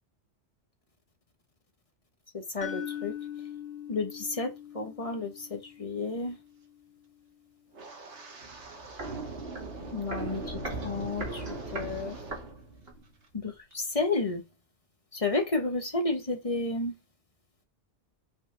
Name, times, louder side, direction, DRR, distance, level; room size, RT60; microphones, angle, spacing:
voice 1, 2.3-3.1 3.9-6.4 9.9-12.1 13.3-14.4 15.1-16.9, left 3 dB, 30° left, 1.3 m, -31 dB
sound 1, 2.6-6.7, left 10 dB, 50° left, 1.2 m, -41 dB
Wind, 7.7-12.6 12.8-13.3 13.7-14.0, right 3 dB, 75° right, 1.7 m, -47 dB
Walk footsteps, 8.4-13.1 13.4-13.5, right 2 dB, 60° right, 2.3 m, -38 dB
5.6 x 5.0 x 3.3 m
omnidirectional pair, 1.2 m